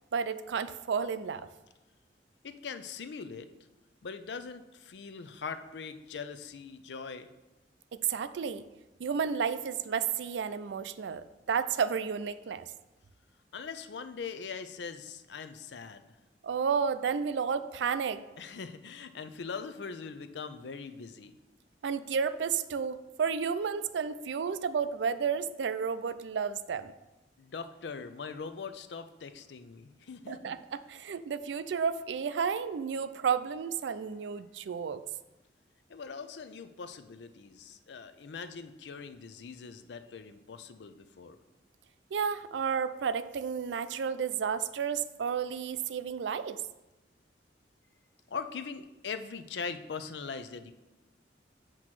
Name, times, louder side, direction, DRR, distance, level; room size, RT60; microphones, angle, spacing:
voice 1, 0.1-1.5 7.9-8.7 9.0-12.7 16.4-18.2 21.8-26.9 30.3-35.0 42.1-46.6, right 6 dB, 90° right, 13 dB, 0.4 m, -32 dB
voice 2, 2.4-3.5 4.0-7.3 13.5-16.0 18.4-21.4 27.4-30.5 35.9-41.4 48.3-50.7, left 5 dB, 80° left, 10 dB, 0.5 m, -41 dB
7.8 x 3.0 x 5.9 m, 1.0 s
head